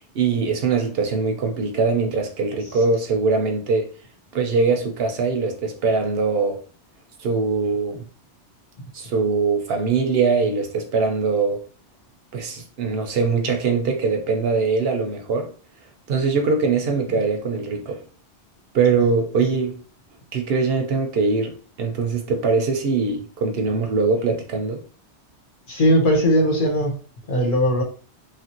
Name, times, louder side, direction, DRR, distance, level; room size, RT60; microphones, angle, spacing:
voice 1, 0.1-3.9 4.3-6.6 7.2-8.0 8.9-11.6 12.3-15.5 16.1-18.0 18.7-19.8 20.3-24.8, right 4 dB, 65° right, 0.8 m, -22 dB
voice 2, 25.7-26.9 27.3-27.8, equal, 50° left, 1.0 m, -18 dB
3.0 x 2.5 x 2.9 m
omnidirectional pair, 1.2 m